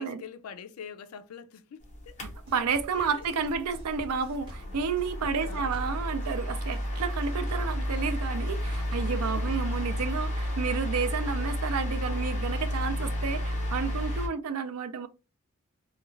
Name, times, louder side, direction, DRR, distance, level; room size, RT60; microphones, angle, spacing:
voice 1, 0.0-2.2 2.9-3.6 5.2-5.7 8.6-9.5, left 7 dB, 75° left, 0.4 m, -45 dB
sound 1, 1.8-14.3, equal, 35° left, 0.9 m, -32 dB
Drum kit, 2.2-10.2, equal, 25° right, 1.0 m, -50 dB
voice 2, 2.2-15.1, right 5 dB, 80° right, 0.4 m, -31 dB
2.4 x 2.3 x 3.0 m
head